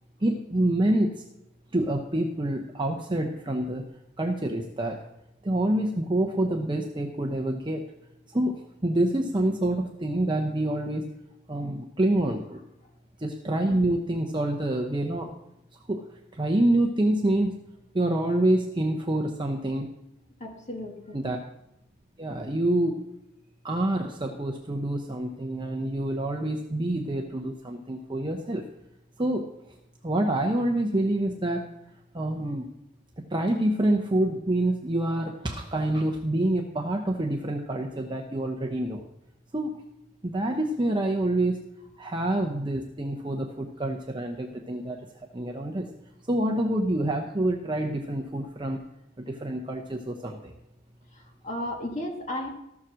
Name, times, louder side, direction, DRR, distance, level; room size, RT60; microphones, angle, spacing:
voice 1, 0.2-1.2 1.7-3.9 4.2-5.0 5.4-7.8 8.3-8.5 8.8-11.1 11.5-12.6 13.2-15.3 15.7-17.6 17.9-19.9 21.1-21.4 22.2-23.0 23.6-28.6 29.2-29.5 30.0-31.6 32.1-32.7 33.3-39.0 39.5-39.8 40.2-41.6 42.0-45.0 45.3-45.9 46.3-48.8 49.2-50.5, right 1 dB, 25° right, 2 dB, 0.8 m, -27 dB
voice 2, 20.4-21.2 51.4-52.5, left 1 dB, 35° left, 1 dB, 2.0 m, -33 dB
14.0 x 7.2 x 6.3 m, 0.87 s
head